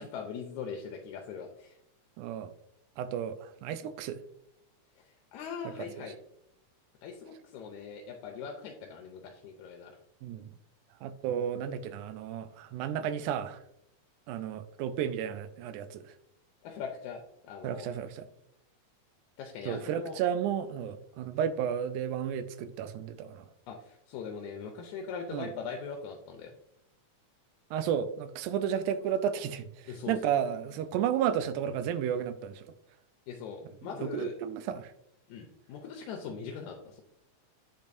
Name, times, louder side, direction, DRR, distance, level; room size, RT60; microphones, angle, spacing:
voice 1, 0.0-1.8 5.3-6.2 7.0-10.0 16.6-17.9 19.4-20.2 23.7-26.5 29.9-30.3 33.3-34.3 35.3-37.0, left 6 dB, 80° left, 2 dB, 2.0 m, -41 dB
voice 2, 2.2-2.5 3.0-4.2 6.0-6.1 10.2-10.5 11.0-13.6 14.3-16.0 17.6-18.3 19.7-23.5 25.3-25.5 27.7-32.7 34.0-34.9, right 9 dB, 85° right, 11 dB, 2.0 m, -32 dB
8.9 x 5.4 x 2.6 m, 0.78 s
omnidirectional pair, 3.6 m